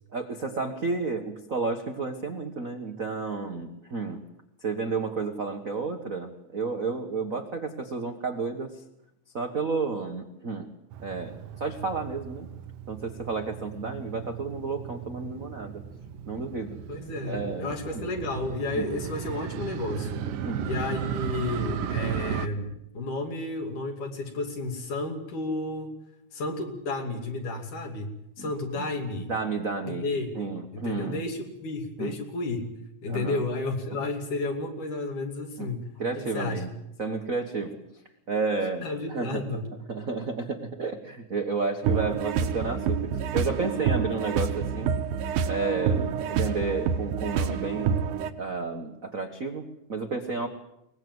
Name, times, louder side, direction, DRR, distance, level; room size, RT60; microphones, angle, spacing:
voice 1, 0.1-4.2 4.6-8.7 9.3-10.7 11.0-11.3 11.6-12.5 12.9-15.8 16.3-16.8 17.3-17.7 18.7-18.9 20.4-20.7 28.4-28.5 28.8-28.9 29.2-30.0 30.3-31.2 32.0-32.1 33.1-33.4 35.6-35.7 36.0-36.7 37.0-37.8 38.3-39.4 39.9-43.0 43.3-44.9 45.5-47.9 48.4-50.5, right 4 dB, 55° right, 5 dB, 0.9 m, -31 dB
Motorcycle, 10.9-22.5, right 8 dB, 90° right, 2.7 m, -36 dB
voice 2, 16.9-20.2 20.6-25.9 26.3-29.3 29.8-30.3 30.7-32.7 33.0-36.0 36.3-36.7 38.8-39.7, left 2 dB, 70° left, 3 dB, 4.2 m, -32 dB
sound 1, 41.8-48.3, right 7 dB, 75° right, 2.5 m, -27 dB
23.0 x 20.0 x 8.0 m, 0.84 s
omnidirectional pair, 3.7 m